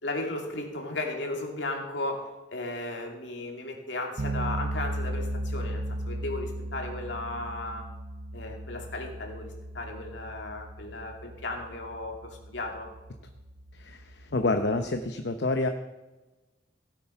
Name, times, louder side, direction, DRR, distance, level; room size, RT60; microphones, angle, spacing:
voice 1, 0.0-7.9 8.3-12.9, left 2 dB, 80° left, 1 dB, 2.7 m, -35 dB
sound 1, 4.2-15.1, right 1 dB, 60° right, 0.8 m, -36 dB
voice 2, 13.7-15.7, left 2 dB, 65° left, 6 dB, 0.8 m, -28 dB
16.0 x 8.7 x 5.7 m, 1.1 s
head